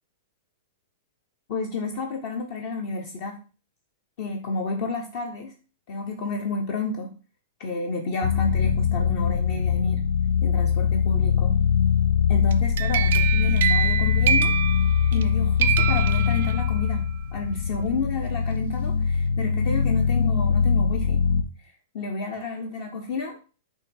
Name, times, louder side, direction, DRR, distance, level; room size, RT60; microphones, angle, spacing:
voice 1, 1.5-3.4 4.2-5.5 5.9-7.1 7.6-10.0 10.4-11.6 12.3-14.5 15.1-17.1 17.3-21.2 21.9-23.4, left 3 dB, 40° left, 3 dB, 0.8 m, -30 dB
sound 1, 8.2-21.4, left 7 dB, 75° left, 0.5 m, -22 dB
sound 2, 12.5-15.3 15.6-16.9, right 9 dB, 60° right, 0.5 m, -26 dB
6.3 x 3.2 x 5.3 m, 0.35 s
supercardioid pair, 170°, 0 cm